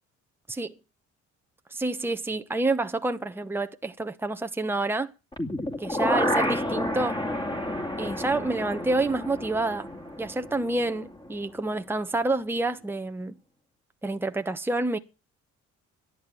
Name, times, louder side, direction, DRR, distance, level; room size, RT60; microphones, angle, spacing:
voice 1, 1.7-5.1 5.8-7.2 8.0-9.9 10.2-13.4 14.0-15.0, right 2 dB, 5° right, 1.1 m, -28 dB
sound 1, 5.3-11.3 11.7-11.8, left 1 dB, 15° left, 2.4 m, -30 dB
12.0 x 10.5 x 8.4 m
cardioid pair, 90°, 30 cm